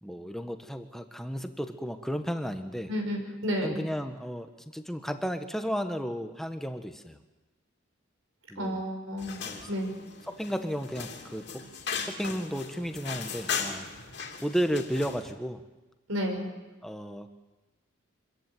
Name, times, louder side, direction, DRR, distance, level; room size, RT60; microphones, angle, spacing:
voice 1, 0.0-2.9 3.6-7.2 8.5-8.8 9.4-9.7 10.3-11.7 12.0-13.9 14.4-15.6 16.8-17.3, equal, ahead, 7 dB, 1.2 m, -33 dB
voice 2, 2.9-3.8 8.6-9.4 9.7-9.9 16.1-16.5, equal, 85° right, 3 dB, 5.5 m, -31 dB
sound 1, 9.2-15.3, left 6 dB, 55° left, 3.0 m, -38 dB
25.5 x 14.5 x 9.2 m, 1.1 s
head